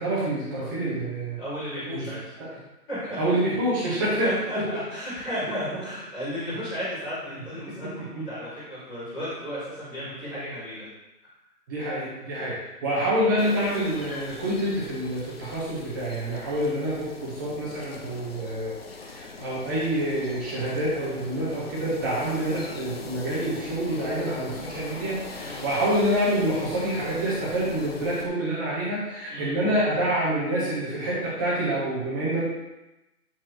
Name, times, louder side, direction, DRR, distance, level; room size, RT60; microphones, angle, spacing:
voice 1, 0.0-1.4 1.9-2.1 2.4-2.5 3.2-4.6 7.8-8.2 11.7-18.8 19.0-32.4, right 1 dB, 15° right, -7 dB, 1.4 m, -27 dB
voice 2, 1.4-2.2 2.9-3.2 3.8-10.9 16.4-16.8 25.4-25.8 29.3-29.5, equal, ahead, -17 dB, 0.9 m, -34 dB
sound 1, 13.4-28.3, left 3 dB, 40° left, 0.8 m, -41 dB
12.0 x 4.6 x 3.2 m, 0.99 s
hypercardioid pair, 170°, 47 cm